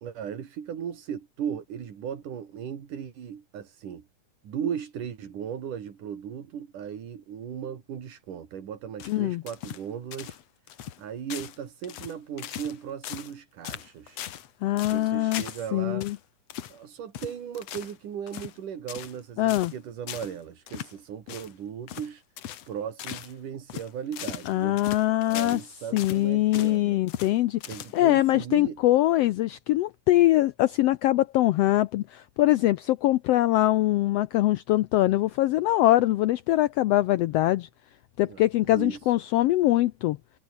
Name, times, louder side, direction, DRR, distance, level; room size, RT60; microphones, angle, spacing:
voice 1, 0.0-4.1 4.4-10.4 11.0-14.2 14.9-16.1 16.7-22.2 22.7-24.8 25.3-27.0 27.7-28.8 38.2-39.1, right 8 dB, 85° right, 4.1 m, -37 dB
sound 1, 9.0-9.9 10.1-10.4 10.7-11.0 11.3-11.6 11.8-12.8 13.0-13.4 13.6-14.5 14.8-15.7 16.0-16.2 16.5-16.8 17.1-18.0 18.3-18.6 18.9-19.2 19.5-19.8 20.1-20.3 20.7-20.9 21.3-21.5 21.9-22.1 22.4-22.7 23.0-23.3 23.7-25.7 26.0-26.8 27.1-27.3 27.6-28.2, left 11 dB, 60° left, 2.2 m, -39 dB
voice 2, 9.1-9.4 14.6-15.4 15.7-16.2 19.4-19.7 24.5-25.6 25.9-27.6 27.9-37.7 38.2-40.2, left 15 dB, 90° left, 1.3 m, -23 dB
omnidirectional pair, 3.6 m